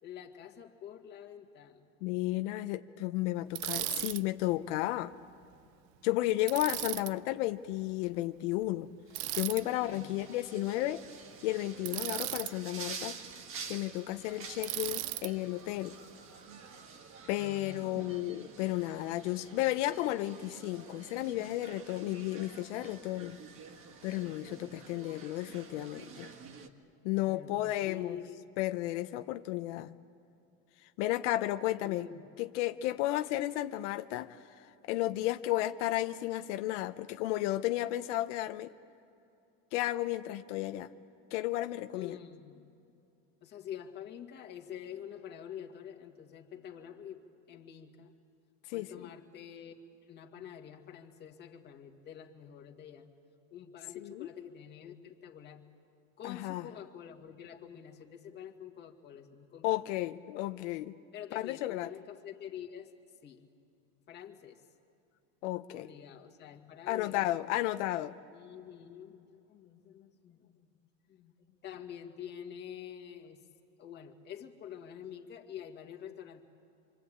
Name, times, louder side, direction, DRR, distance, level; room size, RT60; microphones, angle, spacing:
voice 1, 0.0-1.9 6.6-6.7 9.9-10.3 17.4-18.2 27.3-28.5 31.8-32.2 41.9-42.7 43.4-48.1 48.7-49.7 50.1-53.1 53.5-55.6 56.2-59.8 61.1-62.9 63.2-63.5 64.1-64.7 65.7-67.4 68.3-70.7 71.1-73.4 73.8-76.4, left 9 dB, 30° left, 2 dB, 2.0 m, -47 dB
voice 2, 2.0-5.1 6.0-8.9 9.3-11.0 11.4-13.2 13.7-16.0 17.3-23.4 24.0-26.3 27.0-28.2 28.6-29.9 31.0-32.1 32.4-38.7 39.7-40.9 41.3-42.2 48.7-49.1 54.0-54.3 56.2-56.6 59.6-60.9 61.3-61.9 65.4-65.9 66.9-68.2, left 16 dB, 85° left, 8 dB, 0.8 m, -33 dB
Bicycle, 3.5-4.2 6.5-7.1 9.1-9.6 11.9-12.5 14.6-15.3, right 18 dB, 70° right, 0.6 m, -36 dB
sound 1, 9.6-26.7, right 5 dB, 40° right, 1.6 m, -48 dB
27.0 x 25.0 x 8.7 m, 2.7 s
cardioid pair, 160°, 34 cm